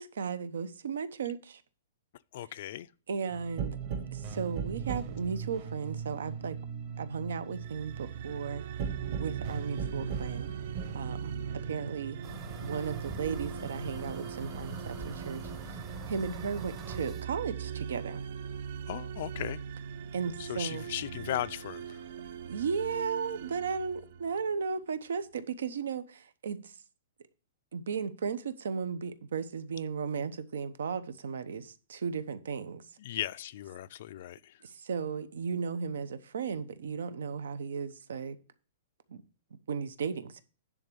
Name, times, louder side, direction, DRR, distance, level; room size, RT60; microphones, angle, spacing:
voice 1, 0.0-1.6 3.1-3.8 4.1-6.6 7.0-8.7 9.2-10.5 10.9-11.3 11.6-12.2 12.6-18.2 20.1-20.9 22.5-26.7 27.7-32.8 34.6-38.4 39.1-39.2 39.7-40.4, right 6 dB, 80° right, 0.9 m, -35 dB
voice 2, 2.3-2.9 18.9-19.6 20.4-22.0 33.0-34.6, left 12 dB, 40° left, 0.3 m, -37 dB
sound 1, 3.3-16.3 16.6-18.5 18.8-20.5 20.9-22.7, right 7 dB, 30° right, 1.1 m, -41 dB
sound 2, 7.5-24.6, right 7 dB, 50° right, 0.6 m, -41 dB
sound 3, 12.2-17.3, right 3 dB, 15° right, 0.8 m, -43 dB
10.0 x 3.6 x 6.8 m
hypercardioid pair, 175°, 0 cm